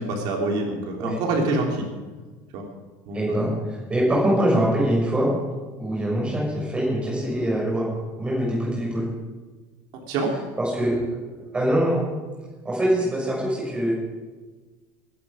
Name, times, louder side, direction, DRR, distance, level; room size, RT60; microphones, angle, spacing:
voice 1, 0.0-1.9 2.5-2.6 3.1-3.5 10.1-10.3, right 2 dB, 55° right, 1 dB, 3.2 m, -26 dB
voice 2, 3.1-3.5 3.9-5.3 5.8-7.9 8.2-9.1 10.6-10.9 11.5-12.0 12.6-13.9, right 1 dB, 10° right, -4 dB, 6.4 m, -23 dB
22.5 x 11.0 x 5.1 m, 1.3 s
cardioid pair, 170°, 9 cm